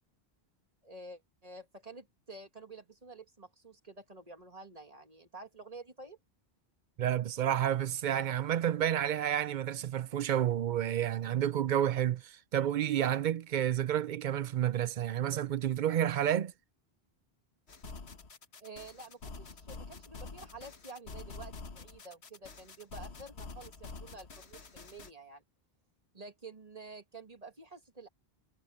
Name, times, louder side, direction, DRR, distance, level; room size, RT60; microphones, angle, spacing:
voice 1, 0.8-6.2 18.6-25.4 26.1-28.1, right 3 dB, 35° right, 2.2 m, -50 dB
voice 2, 7.0-16.5, right 10 dB, 55° right, 0.6 m, -30 dB
sound 1, 17.7-25.1, left 4 dB, 90° left, 1.9 m, -47 dB
omnidirectional pair, 1.1 m